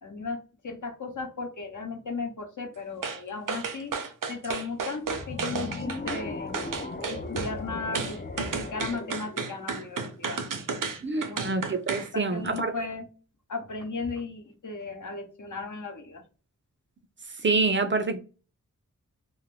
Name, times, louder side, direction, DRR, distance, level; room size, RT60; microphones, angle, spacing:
voice 1, 0.0-3.9 4.3-6.5 7.1-10.4 10.9-11.6 12.0-13.1 13.5-16.2, left 4 dB, 70° left, 0.8 m, -36 dB
sound 1, 3.0-3.2 3.5-6.2 6.5-7.5 7.9-12.1 12.4-12.6, right 5 dB, 80° right, 0.6 m, -32 dB
sound 2, 5.1-10.3, left 3 dB, 30° left, 0.4 m, -38 dB
voice 2, 11.0-12.7 17.4-18.2, right 3 dB, 40° right, 0.4 m, -26 dB
2.5 x 2.4 x 3.4 m
wide cardioid pair, 85°, 32 cm